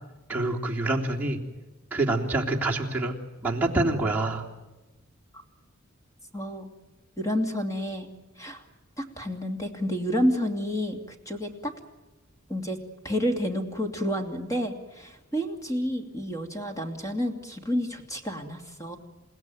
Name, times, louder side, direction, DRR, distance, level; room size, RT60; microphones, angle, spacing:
voice 1, 0.3-1.4 1.9-3.1 3.4-4.4, right 2 dB, 10° right, -4 dB, 3.2 m, -26 dB
voice 2, 6.3-6.7 7.2-8.1 8.4-8.6 9.0-11.0 11.3-11.7 12.5-12.8 13.0-19.0, equal, 15° left, 4 dB, 2.7 m, -29 dB
29.0 x 17.0 x 9.3 m, 1.1 s
head